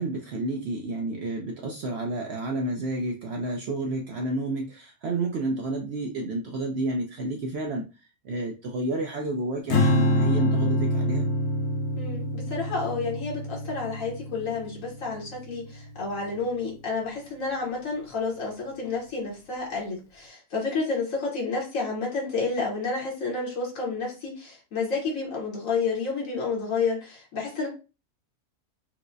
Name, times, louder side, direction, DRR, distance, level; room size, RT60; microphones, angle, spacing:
voice 1, 0.0-7.9 8.2-11.3, right 2 dB, 65° right, 1 dB, 0.7 m, -30 dB
Strum, 9.7-16.1, left 1 dB, 60° left, 0.9 m, -26 dB
voice 2, 12.0-27.7, left 4 dB, 75° left, -3 dB, 1.4 m, -30 dB
4.5 x 2.1 x 2.6 m, 0.31 s
omnidirectional pair, 1.4 m